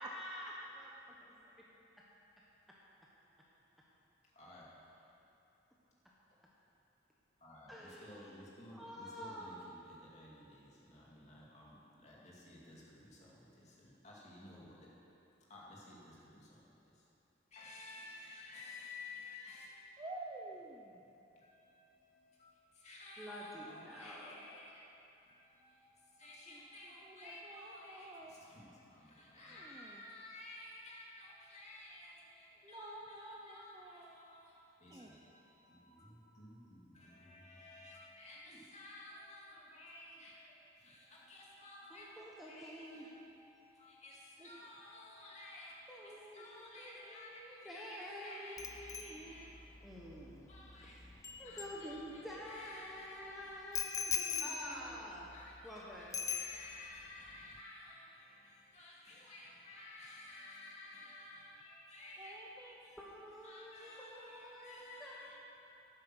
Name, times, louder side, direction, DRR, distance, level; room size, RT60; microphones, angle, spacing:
voice 1, 0.0-1.3 7.7-8.4 8.7-9.6 23.2-24.4 41.9-43.1 45.9-49.3 49.8-50.5 50.8-51.1 51.4-55.3 55.6-56.2 63.0-65.2, equal, ahead, -6 dB, 1.0 m, -49 dB
voice 2, 4.3-5.0 7.4-14.9 15.5-17.1 17.5-20.0 21.3-49.9 50.5-51.0 51.4-55.0 55.3-62.4 62.8-63.0 63.4-65.4, left 2 dB, 35° left, -5 dB, 2.3 m, -54 dB
voice 3, 20.0-21.1 26.5-26.6 27.0-28.4 29.3-30.0 32.6-34.1 34.9-35.1 44.4-44.5 62.2-62.8, right 2 dB, 20° right, -1 dB, 0.7 m, -50 dB
Bicycle bell, 48.6-52.4 53.7-55.8 56.1-57.0 57.3-57.6, left 6 dB, 15° left, 0.5 m, -42 dB
11.5 x 9.0 x 6.2 m, 2.9 s
head